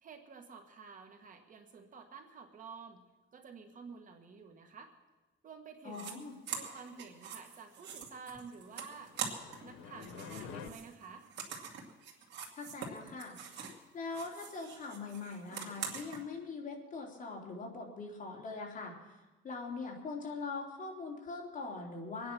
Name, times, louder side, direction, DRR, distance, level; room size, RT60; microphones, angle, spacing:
voice 1, 0.0-3.0 3.3-4.9 5.4-6.2 6.5-9.1 9.6-11.3, right 5 dB, 40° right, 5 dB, 1.6 m, -51 dB
voice 2, 5.8-6.3 12.6-13.4 13.9-18.9 19.4-22.3, left 4 dB, 40° left, 0 dB, 3.2 m, -42 dB
sound 1, 5.9-6.1 6.5-9.7 10.0-13.8 14.1-16.2, right 6 dB, 60° right, 2.4 m, -44 dB
sound 2, 8.8-10.7, left 7 dB, 90° left, 1.2 m, -48 dB
24.0 x 9.5 x 6.0 m, 1.1 s
cardioid pair, 145°, 20 cm